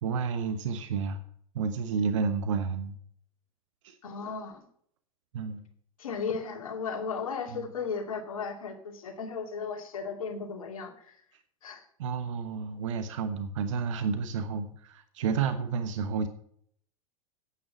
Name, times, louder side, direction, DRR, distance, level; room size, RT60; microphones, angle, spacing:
voice 1, 0.0-1.2 1.5-3.0 3.8-3.9 5.3-5.6 7.5-7.6 12.0-16.3, right 5 dB, 60° right, 9 dB, 1.2 m, -30 dB
voice 2, 4.0-4.7 6.0-11.2 11.6-11.8, left 5 dB, 70° left, 3 dB, 2.5 m, -35 dB
9.6 x 8.7 x 7.3 m, 0.63 s
figure-of-eight pair, 90°, 19 cm